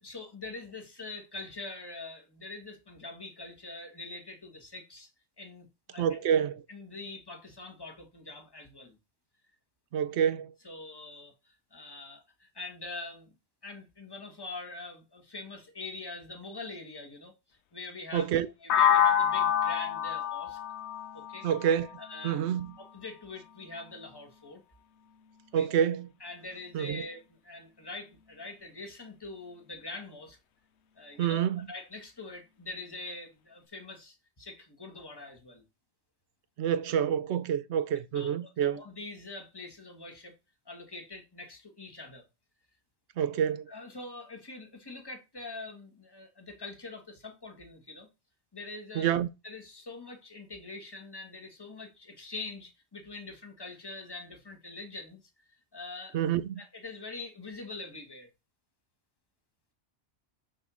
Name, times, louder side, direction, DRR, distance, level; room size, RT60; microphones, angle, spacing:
voice 1, 0.0-5.1 5.4-6.2 6.7-9.0 10.6-13.3 13.6-20.6 21.1-21.5 22.0-22.4 22.8-24.6 25.5-25.7 26.2-30.4 30.9-35.6 38.1-40.3 40.6-42.3 43.7-48.1 48.5-49.2 49.4-55.2 55.5-56.2 56.6-58.3, left 3 dB, 20° left, 1.5 m, -44 dB
voice 2, 6.0-6.6 9.9-10.5 18.1-18.5 21.4-21.9 22.2-22.7 25.5-26.1 26.7-27.0 31.2-31.6 36.6-38.8 43.2-43.7 49.0-49.3 56.1-56.6, right 9 dB, 80° right, 0.9 m, -27 dB
sound 1, 18.7-22.6, left 8 dB, 80° left, 0.9 m, -27 dB
6.5 x 3.6 x 6.1 m
omnidirectional pair, 1.1 m